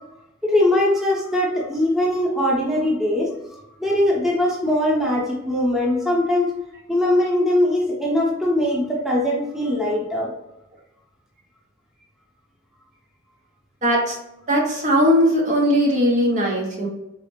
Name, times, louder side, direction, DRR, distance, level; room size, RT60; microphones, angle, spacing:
voice 1, 0.4-6.5 6.9-10.3, left 1 dB, ahead, -4 dB, 0.8 m, -21 dB
voice 2, 13.8-14.2 14.5-16.9, equal, 40° right, -2 dB, 0.6 m, -19 dB
4.0 x 2.0 x 3.1 m, 0.89 s
head